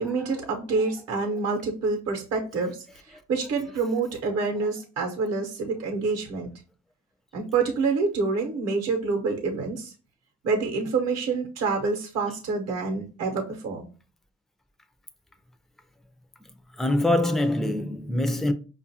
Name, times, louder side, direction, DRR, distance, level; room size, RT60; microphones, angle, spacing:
voice 1, 0.0-6.5 7.3-9.9 10.4-13.9, right 4 dB, 55° right, 0.8 m, -27 dB
voice 2, 16.8-18.5, left 1 dB, ahead, 0.5 m, -24 dB
5.1 x 2.4 x 2.7 m
cardioid pair, 90°, 30 cm